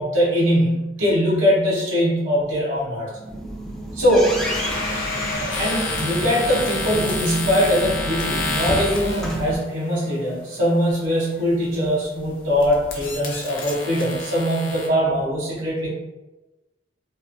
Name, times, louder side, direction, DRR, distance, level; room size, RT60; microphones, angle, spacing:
voice 1, 0.0-3.1 3.9-4.3 5.6-15.9, equal, 80° right, -6 dB, 0.6 m, -21 dB
sound 1, 3.1-9.6, right 1 dB, ahead, 0.4 m, -31 dB
Domestic sounds home sounds, 4.3-8.7, left 2 dB, 45° left, 0.6 m, -32 dB
sound 2, 5.5-9.5 11.5-11.9 12.3-14.9, left 2 dB, 90° left, 0.6 m, -30 dB
2.8 x 2.1 x 2.5 m, 1.1 s
head